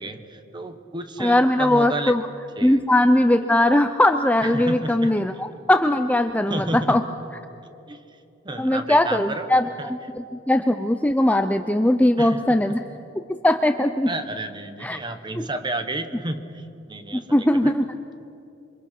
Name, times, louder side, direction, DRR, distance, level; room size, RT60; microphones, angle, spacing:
voice 1, 0.0-2.1 2.6-2.8 4.4-5.1 6.5-7.0 7.9-8.0 8.4-9.5 9.8-9.9 12.2-12.6 14.1-17.7, right 2 dB, 25° right, 9 dB, 1.3 m, -31 dB
voice 2, 1.2-2.2 2.6-7.0 8.6-12.8 13.2-14.1 14.8-15.0 15.4-15.5 17.1-17.9, left 1 dB, 10° left, 8 dB, 0.5 m, -20 dB
27.0 x 24.0 x 5.9 m, 2.7 s
head